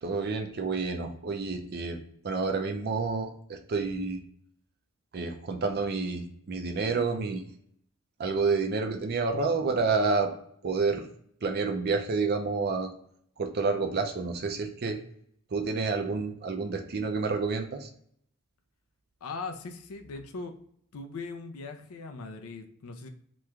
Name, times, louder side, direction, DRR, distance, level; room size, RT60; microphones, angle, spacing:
voice 1, 0.0-2.0 2.2-4.2 5.1-7.4 8.2-10.3 10.6-11.0 11.4-12.9 13.4-15.0 15.5-17.9, right 4 dB, 45° right, 4 dB, 0.5 m, -29 dB
voice 2, 19.2-20.5 20.9-23.1, left 4 dB, 70° left, 6 dB, 0.4 m, -39 dB
3.0 x 2.2 x 3.5 m, 0.65 s
head